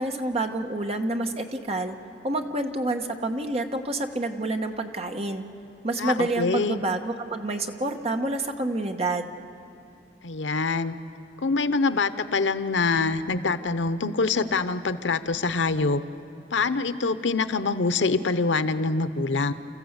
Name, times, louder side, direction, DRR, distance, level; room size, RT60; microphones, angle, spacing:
voice 1, 0.0-2.0 2.2-5.4 5.8-9.3, right 2 dB, 35° right, 4 dB, 1.2 m, -28 dB
voice 2, 6.0-6.8 10.2-10.9 11.4-16.0 16.5-19.5, left 3 dB, 90° left, 12 dB, 0.8 m, -25 dB
29.5 x 14.5 x 8.1 m, 2.7 s
head